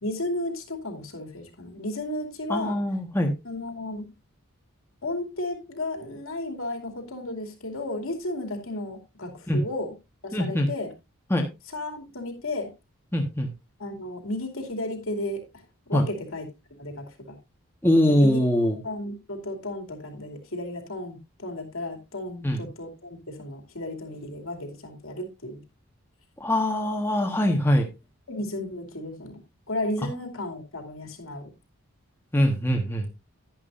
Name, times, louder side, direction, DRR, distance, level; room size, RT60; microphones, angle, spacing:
voice 1, 0.0-2.8 3.4-4.1 5.0-9.9 10.2-10.9 11.7-12.7 13.8-15.6 15.9-17.4 18.1-18.4 18.8-25.6 28.3-29.4 29.7-31.5, left 1 dB, 75° left, 4 dB, 2.7 m, -33 dB
voice 2, 2.5-3.3 9.5-9.6 10.3-10.7 11.3-11.5 13.1-13.5 15.9-16.0 17.8-18.8 22.4-22.6 26.4-27.9 32.3-33.1, equal, 10° left, 2 dB, 1.4 m, -22 dB
11.0 x 11.0 x 2.6 m, 0.24 s
head